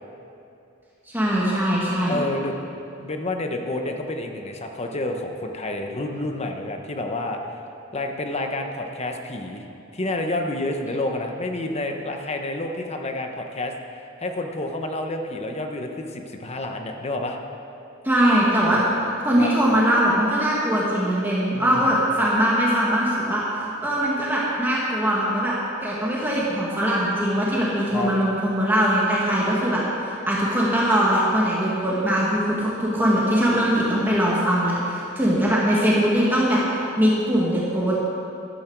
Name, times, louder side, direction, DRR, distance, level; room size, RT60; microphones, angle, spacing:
voice 1, 1.1-2.2 18.0-18.8 19.2-25.5 25.8-29.8 30.3-36.6 37.0-38.0, equal, 10° right, -6 dB, 1.7 m, -21 dB
voice 2, 2.1-2.6 3.0-7.6 7.9-9.7 9.9-17.4 18.7-18.9 19.4-19.5 21.5-22.0 27.9-28.1, left 2 dB, 30° left, 3 dB, 1.0 m, -29 dB
13.0 x 12.5 x 4.7 m, 2.7 s
head